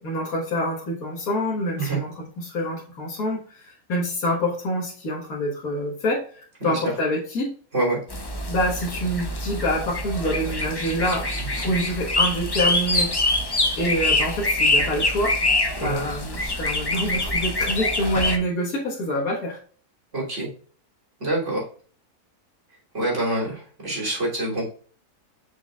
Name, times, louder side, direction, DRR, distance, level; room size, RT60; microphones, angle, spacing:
voice 1, 0.0-7.5 8.5-11.3 11.6-13.1 13.8-15.4 15.8-19.6, equal, 65° left, -4 dB, 1.9 m, -26 dB
sound 1, 8.1-18.4, left 2 dB, 25° left, 0.5 m, -25 dB
voice 2, 20.1-20.5 21.2-21.7 22.9-24.7, right 1 dB, 50° right, -4 dB, 3.6 m, -26 dB
6.4 x 6.3 x 2.4 m, 0.43 s
omnidirectional pair, 1.7 m